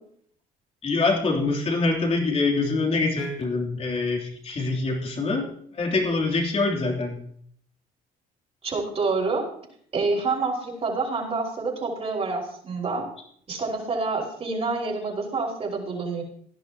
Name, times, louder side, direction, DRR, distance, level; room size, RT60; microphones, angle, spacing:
voice 1, 0.8-5.5 5.7-7.2, left 3 dB, 35° left, 0 dB, 3.2 m, -24 dB
voice 2, 8.6-9.5 9.9-13.1 13.5-16.2, right 3 dB, 35° right, -3 dB, 5.3 m, -27 dB
17.5 x 11.0 x 3.0 m, 0.64 s
cardioid pair, 110°, 17 cm